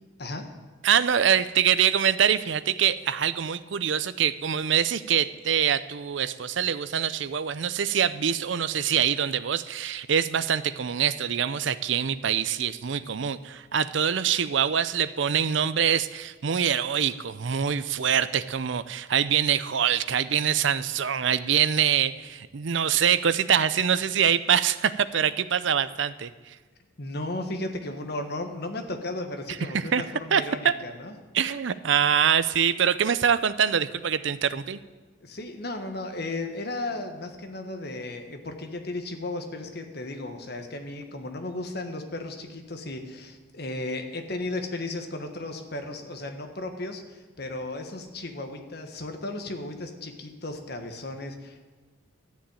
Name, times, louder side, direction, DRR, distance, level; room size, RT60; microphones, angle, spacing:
voice 1, 0.8-26.6 29.7-30.0 30.3-30.7 31.3-34.8, right 8 dB, 70° right, 15 dB, 0.5 m, -24 dB
voice 2, 27.0-31.1 35.2-51.7, left 2 dB, 55° left, 5 dB, 1.4 m, -35 dB
12.5 x 7.2 x 8.9 m, 1.4 s
head